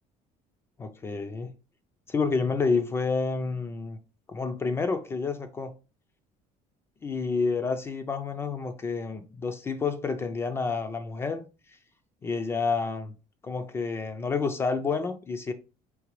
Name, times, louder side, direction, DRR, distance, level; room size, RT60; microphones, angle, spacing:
voice 1, 0.8-1.5 2.1-4.0 4.3-5.7 7.0-11.5 12.2-13.1 13.4-15.5, left 4 dB, 15° left, 0.3 m, -29 dB
4.9 x 3.2 x 3.1 m
cardioid pair, 180°, 14 cm